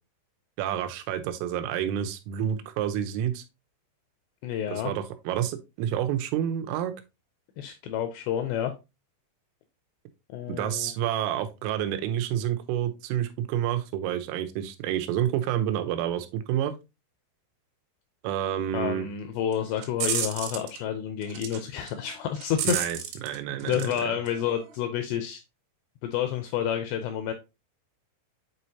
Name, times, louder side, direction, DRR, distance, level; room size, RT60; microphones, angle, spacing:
voice 1, 0.6-3.4 4.7-6.9 10.5-16.7 18.2-19.1 22.6-23.9, right 10 dB, 90° right, 3.3 m, -29 dB
voice 2, 4.4-4.9 7.6-8.7 10.3-10.9 18.7-22.8 23.7-25.4 26.0-27.3, left 9 dB, 85° left, 2.5 m, -29 dB
sound 1, 19.5-20.8 21.2-21.6 21.9-24.0 24.3-24.8, right 8 dB, 70° right, 2.7 m, -32 dB
8.1 x 4.4 x 2.7 m
omnidirectional pair, 5.6 m